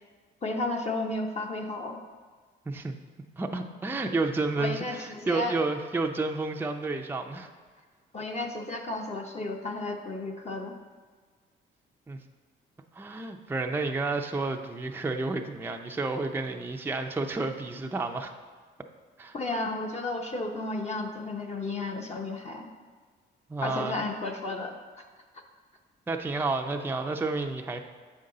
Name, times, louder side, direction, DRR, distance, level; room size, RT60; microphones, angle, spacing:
voice 1, 0.4-2.0 4.6-5.5 8.1-10.8 19.3-22.7 23.6-24.8, left 2 dB, 30° left, 2 dB, 0.8 m, -33 dB
voice 2, 2.7-3.0 3.4-7.5 12.1-12.2 12.9-18.3 19.2-19.3 23.5-24.1 26.1-27.8, right 3 dB, 10° right, 3 dB, 0.5 m, -30 dB
7.1 x 5.3 x 3.8 m, 1.5 s
cardioid pair, 80°, 21 cm